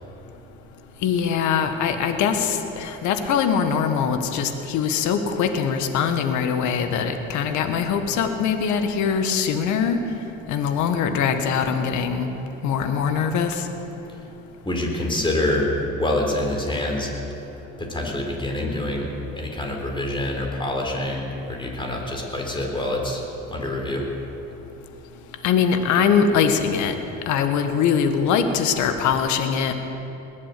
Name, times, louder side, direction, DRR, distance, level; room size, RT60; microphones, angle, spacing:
voice 1, 1.0-10.0 10.5-12.3 12.6-13.6 25.4-26.9 27.3-29.7, left 7 dB, 70° left, 7 dB, 1.5 m, -22 dB
voice 2, 14.6-17.1 17.8-23.2 23.5-24.1, left 1 dB, 15° left, 0 dB, 4.0 m, -26 dB
20.5 x 7.5 x 8.5 m, 3.0 s
supercardioid pair, 75°, 30 cm